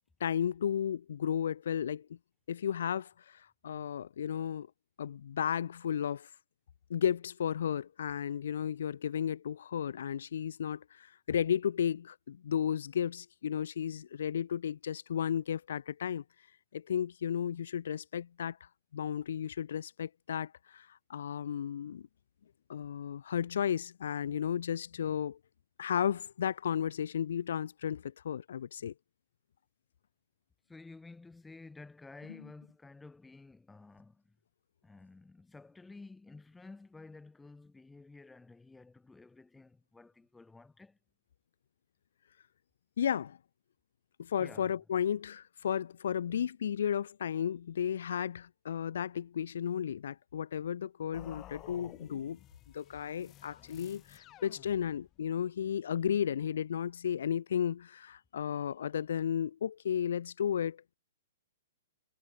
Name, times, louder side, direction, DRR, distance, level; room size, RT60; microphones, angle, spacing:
voice 1, 0.2-2.1 2.5-4.7 5.0-6.3 6.9-16.2 16.7-22.1 22.7-25.4 25.8-28.9 43.0-43.4 44.2-52.4 52.7-61.0, left 8 dB, 70° left, 1.1 m, -34 dB
voice 2, 30.7-34.4 34.8-41.0 44.4-44.8, left 3 dB, 5° left, 4.6 m, -52 dB
sound 1, 51.1-55.2, left 14 dB, 30° left, 3.7 m, -54 dB
hypercardioid pair, 125°, 0 cm